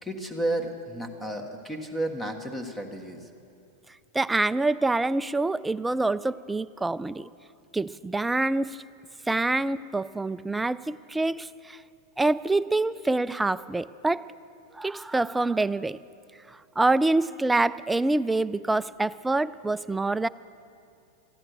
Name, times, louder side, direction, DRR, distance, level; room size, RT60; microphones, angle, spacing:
voice 1, 0.0-3.3, right 1 dB, 10° left, 5 dB, 1.6 m, -32 dB
voice 2, 4.1-7.3 7.7-8.8 9.3-11.8 12.2-14.3 14.7-16.0 16.5-20.3, right 2 dB, 10° right, 15 dB, 0.3 m, -26 dB
14.5 x 10.5 x 7.9 m, 2.5 s
hypercardioid pair, 110°, 0 cm